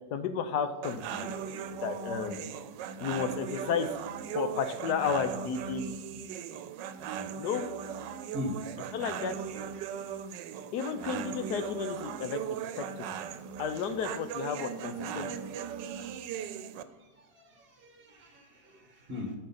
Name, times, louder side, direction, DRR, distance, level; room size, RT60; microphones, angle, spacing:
voice 1, 0.1-1.4 1.8-2.5 3.0-3.9 4.3-5.9 7.4-7.6 8.9-9.3 10.7-12.4 12.8-12.9 13.6-15.3, left 6 dB, 70° left, 9 dB, 1.3 m, -32 dB
sound 1, 0.8-16.8, right 8 dB, 90° right, 1.2 m, -38 dB
voice 2, 17.0-19.3, left 2 dB, 35° right, 2 dB, 1.6 m, -40 dB
8.7 x 5.3 x 5.6 m, 1.3 s
omnidirectional pair, 1.9 m